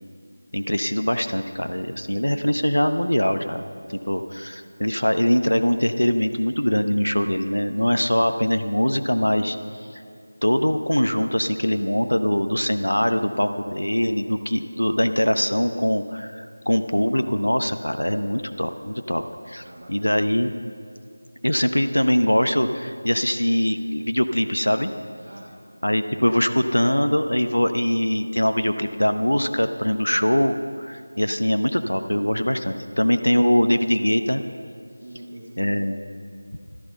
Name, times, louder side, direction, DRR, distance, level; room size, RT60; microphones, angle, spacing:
voice 1, 0.5-9.6 9.9-10.0 10.4-20.5 21.4-24.9 25.8-34.4 35.6-36.0, equal, 75° left, 8 dB, 0.8 m, -22 dB
voice 2, 19.6-20.1 25.2-26.0 34.0-34.1 35.0-35.8, right 1 dB, 35° right, -2 dB, 1.4 m, -44 dB
13.5 x 13.5 x 5.6 m, 2.3 s
figure-of-eight pair, 170°, 0 cm